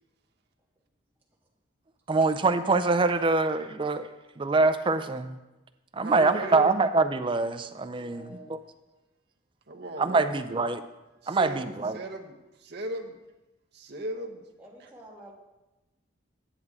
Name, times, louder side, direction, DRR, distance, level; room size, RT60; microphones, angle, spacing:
voice 1, 2.1-4.1 4.4-5.4 5.9-8.6 10.0-10.8 11.3-12.0, right 3 dB, 25° right, 9 dB, 0.4 m, -25 dB
voice 2, 6.0-6.7 9.7-10.8 11.2-11.7 11.9-13.2 13.7-14.4 14.8-14.9, right 1 dB, 55° right, 2 dB, 0.9 m, -37 dB
voice 3, 7.9-8.5 14.6-15.3, equal, 10° right, -4 dB, 1.6 m, -48 dB
10.0 x 7.7 x 3.6 m, 1.1 s
head